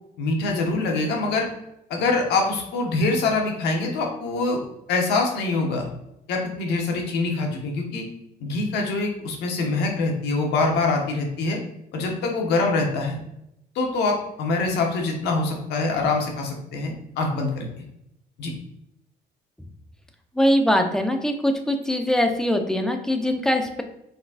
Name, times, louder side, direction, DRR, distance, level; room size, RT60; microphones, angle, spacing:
voice 1, 0.2-1.5 1.9-4.6 4.9-5.9 6.3-8.0 8.4-11.6 11.9-13.2 13.7-17.8 18.4-18.5, left 3 dB, 80° left, 1 dB, 1.1 m, -24 dB
voice 2, 20.4-23.8, equal, 5° left, 5 dB, 0.6 m, -22 dB
4.6 x 4.1 x 2.5 m, 0.81 s
cardioid pair, 110°, 17 cm